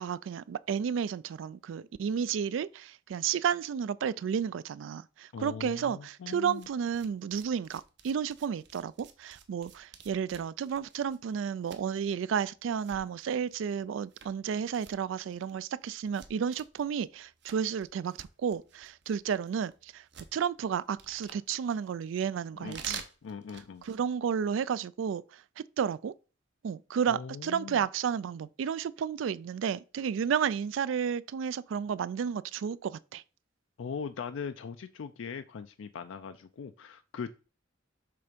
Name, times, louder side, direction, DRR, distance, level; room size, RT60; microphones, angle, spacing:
voice 1, 0.0-20.0 20.3-23.0 23.8-25.2 25.8-26.1 26.6-33.2, right 7 dB, 80° right, 0.3 m, -32 dB
voice 2, 5.3-6.7 22.5-23.8 27.1-27.8 33.8-37.3, left 6 dB, 80° left, 0.4 m, -40 dB
sound 1, 6.5-24.1, right 7 dB, 60° right, 0.8 m, -50 dB
6.8 x 3.5 x 5.1 m
head